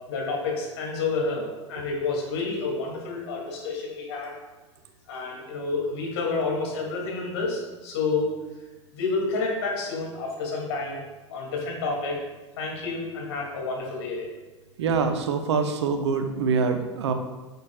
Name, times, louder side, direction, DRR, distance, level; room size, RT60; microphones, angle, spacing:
voice 1, 0.1-4.4 5.1-8.3 8.9-11.0 11.3-12.2 12.6-14.3, left 3 dB, 60° left, -2 dB, 2.5 m, -29 dB
voice 2, 14.8-17.1, right 5 dB, 60° right, 7 dB, 0.8 m, -24 dB
10.5 x 6.7 x 2.4 m, 1.2 s
figure-of-eight pair, 85°, 16 cm